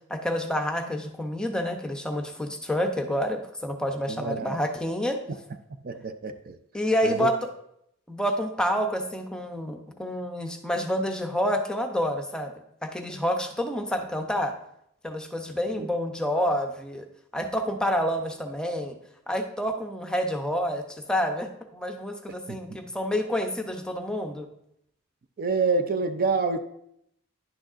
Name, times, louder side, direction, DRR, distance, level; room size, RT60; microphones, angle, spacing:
voice 1, 0.1-5.2 6.7-7.5 8.1-12.5 12.8-14.5 15.0-17.1 17.3-19.0 19.3-24.5, equal, 5° left, 4 dB, 0.6 m, -28 dB
voice 2, 4.1-4.6 5.8-6.6 7.0-7.3 15.7-15.9 22.5-22.6 25.4-26.6, right 4 dB, 45° right, 9 dB, 0.4 m, -27 dB
10.5 x 6.3 x 2.5 m, 0.75 s
head